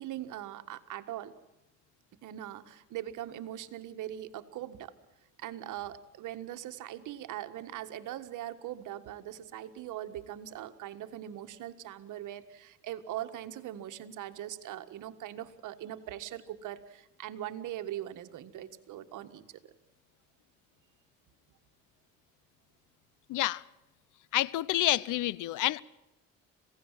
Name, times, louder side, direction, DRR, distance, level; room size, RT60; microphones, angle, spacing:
voice 1, 0.0-1.3 2.2-4.9 5.4-19.4, right 12 dB, 85° right, 1.7 m, -41 dB
voice 2, 23.3-23.6 24.3-25.8, left 15 dB, 85° left, 0.8 m, -28 dB
27.0 x 17.0 x 7.5 m
cardioid pair, 90°, 30 cm